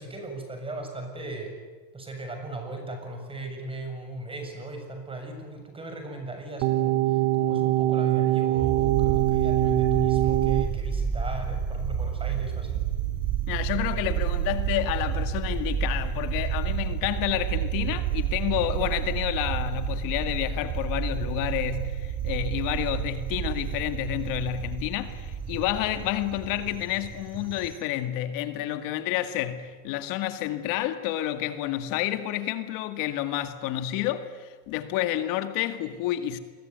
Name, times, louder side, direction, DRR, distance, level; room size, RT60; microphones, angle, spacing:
voice 1, 0.0-1.5 1.9-12.8, right 2 dB, 15° right, 7.3 m, -37 dB
sound 1, 6.6-10.7, right 16 dB, 90° right, 1.1 m, -23 dB
sound 2, 8.6-27.8, right 8 dB, 45° right, 4.3 m, -30 dB
voice 2, 13.5-36.4, left 13 dB, 70° left, 2.2 m, -29 dB
28.5 x 22.5 x 9.4 m
cardioid pair, 145°, 35 cm